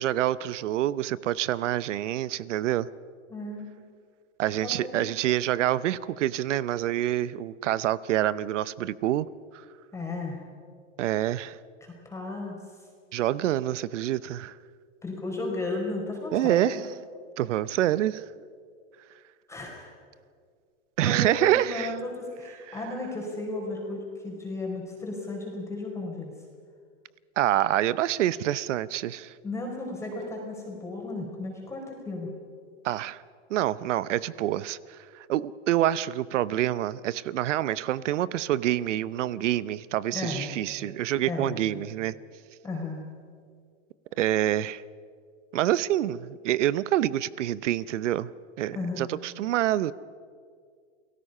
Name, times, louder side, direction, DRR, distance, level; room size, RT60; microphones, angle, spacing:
voice 1, 0.0-2.9 4.4-9.3 9.5-9.6 11.0-11.6 13.1-14.5 16.3-16.8 17.4-18.2 21.0-21.9 22.7-22.8 27.4-29.3 32.8-33.2 33.5-42.1 44.2-44.8 45.5-48.3 48.6-49.9, right 13 dB, 75° right, 18 dB, 0.8 m, -27 dB
voice 2, 3.3-3.7 4.6-5.0 9.9-10.4 11.8-12.6 15.0-16.8 19.5-19.9 21.0-26.3 29.4-32.3 40.1-40.5 41.3-41.6 42.6-43.1 48.7-49.1, left 2 dB, 5° left, -1 dB, 4.5 m, -34 dB
29.5 x 18.5 x 5.6 m, 2.1 s
hypercardioid pair, 135°, 37 cm